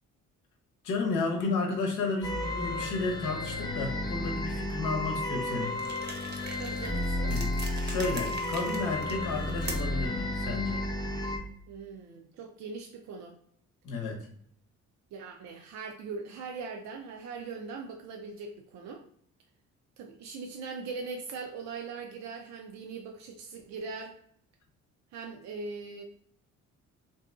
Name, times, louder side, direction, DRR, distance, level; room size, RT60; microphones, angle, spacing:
voice 1, 0.8-5.7 7.3-7.5 7.8-10.8 13.8-14.3, left 3 dB, 85° left, 2 dB, 0.8 m, -32 dB
sound 1, 2.2-11.4, left 1 dB, 15° left, 0.5 m, -32 dB
sound 2, 5.7-10.1, right 3 dB, 35° right, 0.7 m, -42 dB
voice 2, 6.6-7.4 11.7-13.4 15.1-19.0 20.0-24.1 25.1-26.0, right 4 dB, 65° right, 2 dB, 0.4 m, -41 dB
2.7 x 2.6 x 2.3 m, 0.63 s
cardioid pair, 90°, 30 cm